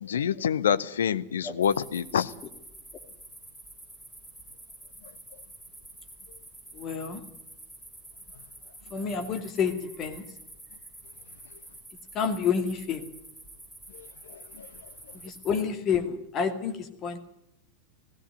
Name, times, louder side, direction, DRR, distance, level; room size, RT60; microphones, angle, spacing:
voice 1, 0.0-2.3, left 8 dB, 65° left, 14 dB, 0.8 m, -26 dB
sound 1, 1.6-15.6, right 1 dB, 5° left, 6.2 m, -48 dB
voice 2, 6.7-7.2 8.9-10.2 12.1-13.1 15.2-17.2, left 6 dB, 30° left, 7 dB, 2.4 m, -29 dB
18.0 x 16.0 x 9.7 m, 0.81 s
figure-of-eight pair, 90°, 0 cm